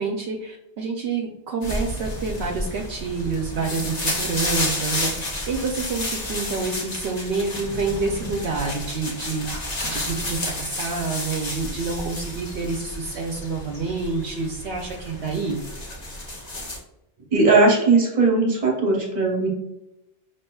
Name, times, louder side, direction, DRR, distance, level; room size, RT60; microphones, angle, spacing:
voice 1, 0.0-15.6, right 4 dB, 75° right, 1 dB, 0.8 m, -28 dB
sound 1, 1.6-16.8, left 1 dB, 40° left, 1.0 m, -31 dB
voice 2, 17.3-19.5, right 3 dB, 40° right, -1 dB, 1.2 m, -18 dB
5.6 x 2.9 x 2.2 m, 0.90 s
omnidirectional pair, 1.1 m